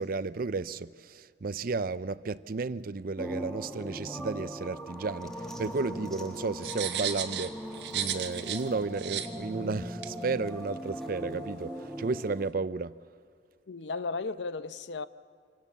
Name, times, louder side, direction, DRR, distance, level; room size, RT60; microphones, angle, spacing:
voice 1, 0.0-7.6 7.9-13.0, right 4 dB, 55° right, 0.5 m, -33 dB
sound 1, 3.2-12.5, equal, 5° left, 1.5 m, -40 dB
sound 2, 6.6-8.7 9.0-9.3 10.0-10.1, right 10 dB, 70° right, 1.3 m, -34 dB
voice 2, 13.7-15.1, left 4 dB, 80° left, 0.7 m, -35 dB
26.0 x 17.5 x 7.3 m
head